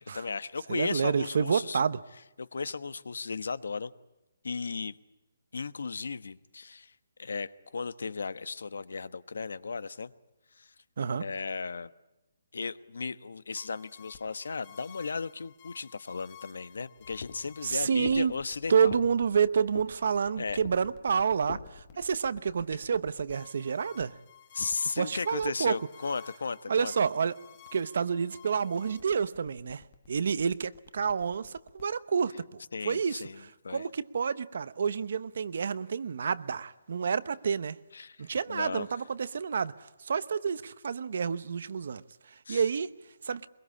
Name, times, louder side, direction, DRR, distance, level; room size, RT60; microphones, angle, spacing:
voice 1, 0.0-1.8 2.4-3.9 4.4-5.0 5.5-6.9 7.2-10.1 10.6-10.7 11.2-11.9 12.5-18.9 20.4-20.6 24.5-27.1 32.7-33.8 37.9-38.2 38.5-38.9 42.5-42.7, left 4 dB, 70° left, 1.1 m, -35 dB
voice 2, 0.7-2.0 11.0-11.2 17.6-18.3 18.7-24.2 25.0-25.8 26.7-27.3 27.7-37.8 38.2-42.0 42.5-42.9 43.2-43.5, right 6 dB, 45° right, 0.8 m, -29 dB
sound 1, 13.5-31.8, left 9 dB, 20° left, 1.3 m, -54 dB
sound 2, 17.0-22.1, left 5 dB, 50° left, 1.9 m, -45 dB
23.0 x 22.5 x 8.5 m
hypercardioid pair, 180°, 0 cm